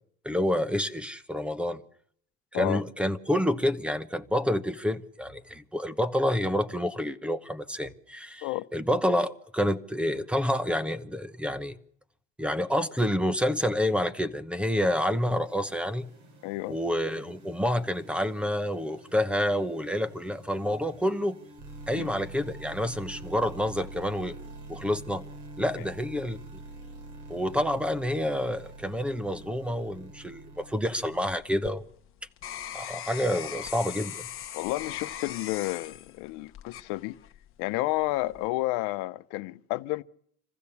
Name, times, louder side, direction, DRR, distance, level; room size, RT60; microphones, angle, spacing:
voice 1, 0.2-1.8 2.5-11.8 12.4-16.0 16.7-21.4 21.9-24.3 24.7-25.2 25.6-26.6 27.3-31.8 32.7-34.3, equal, 5° right, 1.0 m, -28 dB
sound 1, 14.8-31.3, right 2 dB, 85° right, 5.7 m, -46 dB
voice 2, 16.4-16.8 21.9-22.1 25.8-25.9 34.5-37.2 37.6-40.0, left 19 dB, 70° left, 0.8 m, -31 dB
sound 2, 31.4-37.5 38.0-38.5, left 10 dB, 40° left, 1.3 m, -40 dB
25.5 x 15.5 x 7.1 m
supercardioid pair, 110°, 32 cm